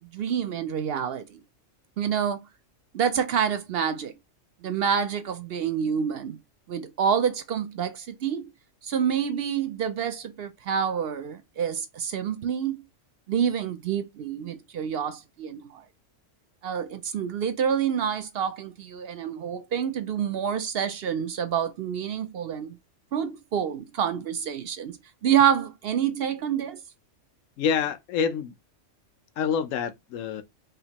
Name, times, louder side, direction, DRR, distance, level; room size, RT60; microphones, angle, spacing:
voice 1, 0.1-1.2 2.0-2.4 2.9-4.1 4.6-6.4 6.7-8.5 8.8-12.8 13.3-15.8 16.6-22.8 23.1-25.0 25.2-26.8, right 8 dB, 60° right, 0.7 m, -27 dB
voice 2, 27.6-28.5 29.4-30.4, left 7 dB, 85° left, 1.0 m, -27 dB
5.0 x 2.6 x 2.9 m
omnidirectional pair, 1.3 m